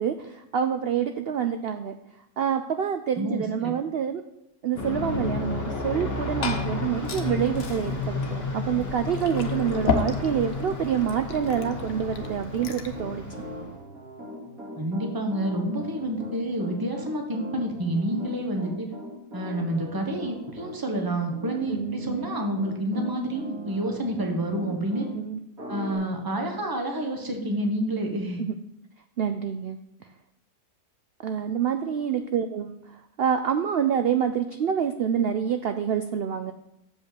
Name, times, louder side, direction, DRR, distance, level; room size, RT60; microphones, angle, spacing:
voice 1, 0.0-1.9 2.4-4.2 4.6-13.2 21.7-22.2 25.1-25.4 28.4-28.5 29.2-29.8 31.2-36.5, right 8 dB, 90° right, 8 dB, 0.5 m, -27 dB
voice 2, 3.2-3.7 14.8-18.9 19.3-25.1 25.7-28.4 32.1-32.3, right 1 dB, 15° right, 3 dB, 1.0 m, -29 dB
Aircraft, 4.7-13.8, left 3 dB, 40° left, 2.0 m, -32 dB
Glass / Fill (with liquid), 5.9-13.0, left 5 dB, 65° left, 1.3 m, -34 dB
Piano, 9.9-25.1 25.6-26.0, equal, 65° right, 2.9 m, -40 dB
7.2 x 5.2 x 6.8 m, 0.83 s
omnidirectional pair, 1.6 m